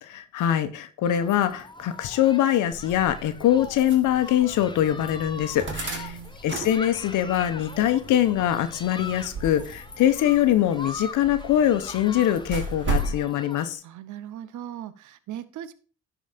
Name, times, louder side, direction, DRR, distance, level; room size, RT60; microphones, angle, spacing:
voice 1, 0.0-6.2 6.4-13.8, left 11 dB, 85° left, 10 dB, 0.9 m, -23 dB
Human group actions, 1.0-13.7, left 3 dB, 15° left, 0.9 m, -42 dB
sound 1, 2.7-13.2, right 2 dB, 40° right, 3.3 m, -36 dB
voice 2, 5.8-6.3 13.8-15.7, right 11 dB, 75° right, 14 dB, 0.8 m, -38 dB
11.5 x 4.8 x 5.1 m, 0.39 s
cardioid pair, 90°, 30 cm